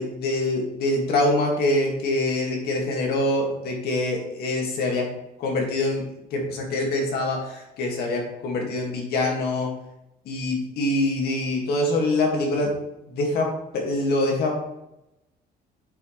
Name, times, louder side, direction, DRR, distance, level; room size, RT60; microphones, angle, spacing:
voice 1, 0.0-5.1 5.4-9.7 10.3-12.7 13.1-14.5, left 2 dB, 70° left, 0 dB, 2.4 m, -25 dB
8.6 x 6.7 x 3.4 m, 0.88 s
cardioid pair, 110°, 17 cm